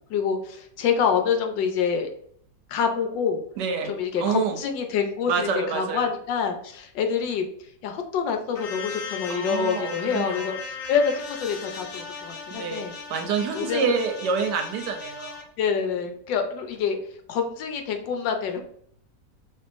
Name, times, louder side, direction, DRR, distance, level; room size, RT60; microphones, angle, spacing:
voice 1, 0.1-2.1 2.7-3.4 3.8-7.4 7.8-12.9 13.5-13.9 15.6-17.0 17.3-18.6, left 6 dB, 80° left, 5 dB, 1.3 m, -26 dB
voice 2, 3.6-3.9 4.2-4.6 5.3-6.1 9.3-10.5 12.5-15.4, right 5 dB, 75° right, 5 dB, 1.2 m, -27 dB
sound 1, 8.5-15.4, left 5 dB, 65° left, 0.8 m, -37 dB
5.4 x 3.0 x 2.5 m, 0.65 s
omnidirectional pair, 2.0 m